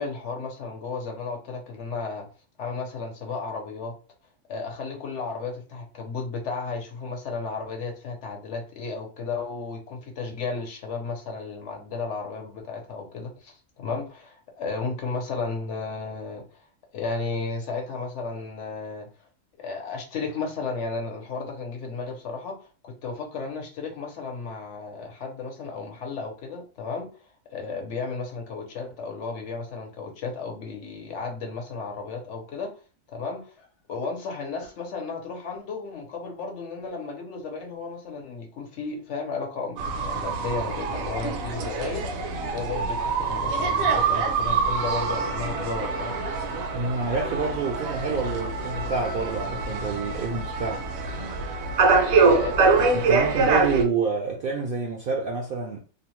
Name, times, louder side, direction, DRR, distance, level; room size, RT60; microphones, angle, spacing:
voice 1, 0.0-2.3 2.6-3.9 4.5-16.6 16.9-19.1 19.6-27.1 27.5-32.7 33.1-42.3 42.5-46.2 51.9-52.5, left 4 dB, 65° left, 0.9 m, -33 dB
sound 1, 39.8-53.8, right 4 dB, 80° right, 1.0 m, -25 dB
voice 2, 46.7-50.8 52.9-55.8, right 4 dB, 65° right, 0.5 m, -28 dB
2.6 x 2.1 x 2.9 m
omnidirectional pair, 1.4 m